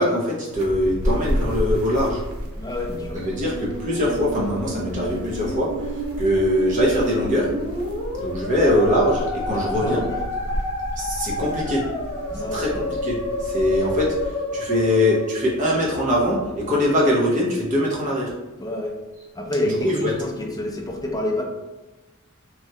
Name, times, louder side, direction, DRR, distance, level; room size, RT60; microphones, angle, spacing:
voice 1, 0.0-2.2 3.1-5.9 6.2-7.5 8.2-10.0 11.0-11.8 12.5-18.3 19.8-20.1, left 1 dB, 35° right, -4 dB, 0.7 m, -22 dB
sound 1, 0.5-14.3, equal, 75° right, 0.5 m, -32 dB
voice 2, 2.6-3.2 9.5-10.2 12.3-12.7 18.6-19.0 19.3-21.4, left 1 dB, 20° left, 1 dB, 0.4 m, -28 dB
Musical instrument, 2.8-16.2, left 1 dB, 55° left, 0.7 m, -30 dB
3.1 x 2.4 x 2.7 m, 1.1 s
head